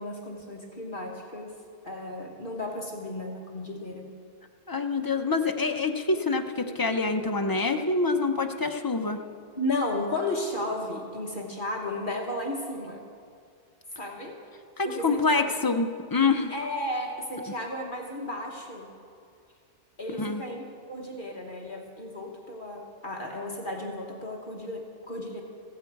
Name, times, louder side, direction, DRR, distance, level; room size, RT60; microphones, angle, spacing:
voice 1, 0.0-1.6 1.8-4.1 9.6-13.0 13.9-14.4 14.8-15.6 16.5-18.9 20.0-25.4, left 1 dB, 45° left, 1 dB, 1.4 m, -34 dB
voice 2, 4.7-9.2 14.8-16.5 20.2-20.4, left 3 dB, 25° left, 5 dB, 0.6 m, -26 dB
15.0 x 15.0 x 4.7 m, 2.3 s
omnidirectional pair, 1.2 m